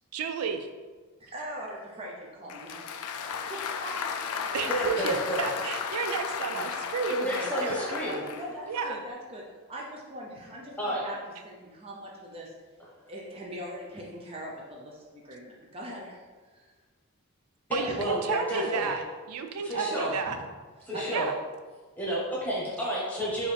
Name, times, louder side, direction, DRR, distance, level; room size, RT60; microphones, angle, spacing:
voice 1, 0.1-0.6 4.5-7.8 8.7-9.0 17.7-20.4 21.1-21.3, right 6 dB, 85° right, 7 dB, 0.4 m, -32 dB
voice 2, 1.2-2.8 3.1-4.2 7.5-9.4 9.7-11.2 11.4-12.5 13.0-16.2 16.5-16.7 17.8-18.0 18.5-18.9 19.7-20.4 20.9-21.2, right 1 dB, 25° right, -3 dB, 0.5 m, -40 dB
Applause, 2.5-8.5, left 6 dB, 85° left, 0.3 m, -34 dB
voice 3, 4.7-5.5 6.5-6.6 7.1-8.2 10.8-11.0 17.7-18.9 19.6-20.1 20.9-21.3 22.0-23.5, equal, 5° left, -6 dB, 1.0 m, -31 dB
4.7 x 2.6 x 3.3 m, 1.4 s
head